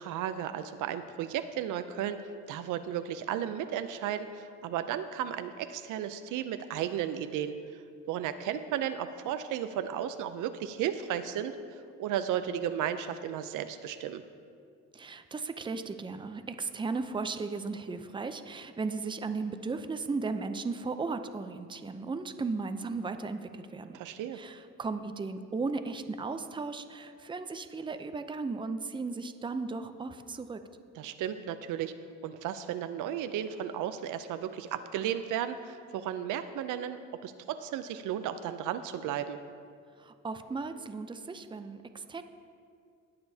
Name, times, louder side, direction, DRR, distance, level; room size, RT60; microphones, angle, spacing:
voice 1, 0.0-7.5 8.1-11.6 12.0-14.2 23.9-24.4 30.9-31.9 32.2-39.4, right 10 dB, 85° right, 10 dB, 0.5 m, -34 dB
voice 2, 14.9-24.0 24.3-30.6 40.0-42.2, right 4 dB, 15° right, 9 dB, 0.5 m, -36 dB
19.5 x 6.8 x 2.8 m, 2.3 s
cardioid pair, 90°, 30 cm